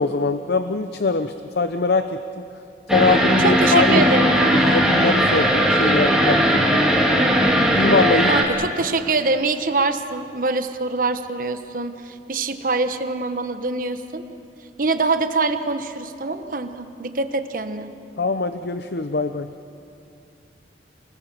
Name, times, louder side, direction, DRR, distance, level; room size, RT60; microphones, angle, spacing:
voice 1, 0.0-2.5 2.9-4.1 4.5-6.8 7.7-8.3 18.2-19.5, left 3 dB, 65° left, 9 dB, 0.7 m, -22 dB
sound 1, 2.9-8.4, equal, 5° right, 2.2 m, -18 dB
voice 2, 3.4-4.8 8.3-14.2 14.8-17.9, right 3 dB, 50° right, 8 dB, 1.2 m, -24 dB
28.5 x 20.0 x 7.5 m, 2.6 s
head